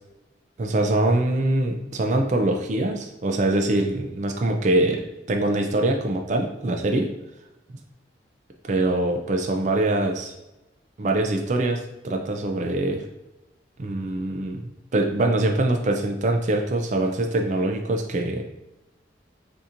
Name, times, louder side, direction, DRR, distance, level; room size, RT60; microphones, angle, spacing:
voice 1, 0.6-5.0 5.3-7.1 8.7-10.3 11.0-13.0 13.8-18.4, right 2 dB, 40° right, 2 dB, 0.4 m, -23 dB
6.7 x 2.8 x 2.6 m, 0.97 s
head